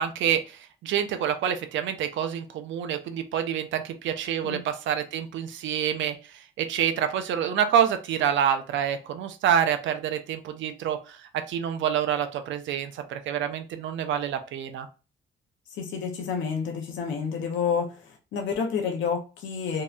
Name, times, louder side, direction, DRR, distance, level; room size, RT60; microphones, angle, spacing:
voice 1, 0.0-11.2 11.5-14.9, right 9 dB, 70° right, 0.4 m, -27 dB
voice 2, 15.8-19.8, left 6 dB, 70° left, 0.6 m, -29 dB
2.7 x 2.1 x 2.3 m
cardioid pair, 90°, 20 cm